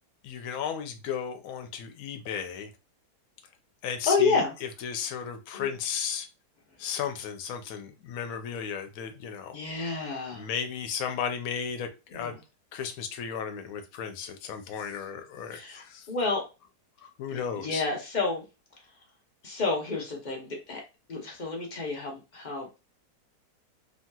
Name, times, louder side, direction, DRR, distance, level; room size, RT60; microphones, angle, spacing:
voice 1, 0.2-2.7 3.8-4.4 4.8-6.3 6.8-9.6 10.4-12.3 12.7-16.1 17.0-17.8, left 7 dB, 70° left, 7 dB, 0.9 m, -34 dB
voice 2, 4.1-4.5 5.5-5.7 9.5-10.5 12.1-12.4 15.5-16.5 17.3-18.5 19.4-20.8 21.1-22.8, left 4 dB, 50° left, 0 dB, 0.5 m, -30 dB
3.0 x 2.8 x 2.2 m, 0.28 s
omnidirectional pair, 1.8 m